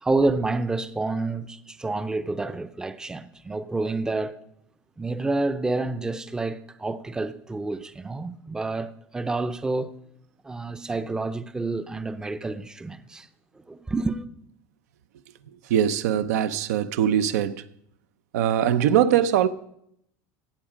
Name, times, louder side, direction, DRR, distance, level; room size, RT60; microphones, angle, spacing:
voice 1, 0.0-4.4 5.0-9.9 10.4-13.3 13.6-14.2, right 3 dB, 10° right, 0.5 m, -28 dB
voice 2, 15.7-17.6 18.3-19.5, right 10 dB, 90° right, 0.7 m, -21 dB
16.5 x 7.2 x 5.1 m
supercardioid pair, 135°, 8 cm